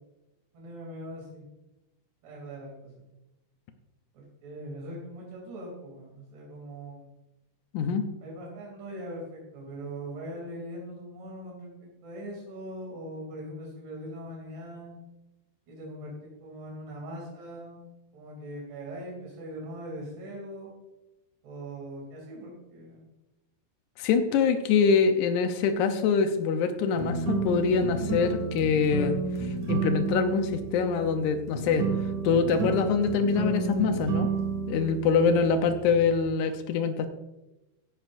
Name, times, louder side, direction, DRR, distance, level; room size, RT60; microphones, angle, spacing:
voice 1, 0.5-1.5 2.2-3.0 4.1-7.1 8.2-15.0 15.7-16.1 16.4-17.8 18.1-20.7 21.4-23.1 24.3-24.4, right 1 dB, 85° right, -2 dB, 5.1 m, -41 dB
voice 2, 7.7-8.0 24.0-29.2 29.7-31.9 32.2-34.3 34.7-37.1, left 5 dB, 85° left, 7 dB, 1.7 m, -24 dB
sound 1, 27.0-36.2, right 4 dB, 55° right, 3.3 m, -31 dB
16.0 x 11.5 x 2.6 m, 0.98 s
omnidirectional pair, 4.6 m